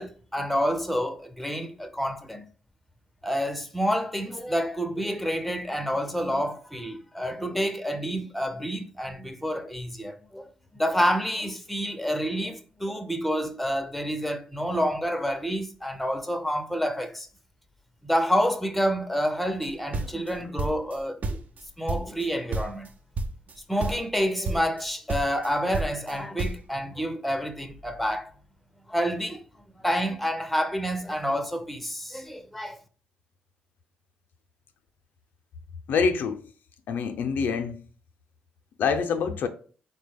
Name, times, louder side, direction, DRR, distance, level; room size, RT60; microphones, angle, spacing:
voice 1, 0.0-2.5 3.2-10.5 10.7-17.3 18.0-21.4 21.8-22.9 23.7-28.3 28.9-29.4 29.8-32.8, equal, ahead, 0.5 m, -28 dB
sound 1, 19.6-21.0 21.2-22.3 22.5-22.9 23.2-23.6 23.8-24.2 24.4-24.8 25.1-26.7, right 2 dB, 50° right, 0.4 m, -30 dB
voice 2, 35.9-36.4 36.9-37.8 38.8-39.5, left 5 dB, 70° left, 0.4 m, -25 dB
3.6 x 2.1 x 3.3 m
supercardioid pair, 70°, 3 cm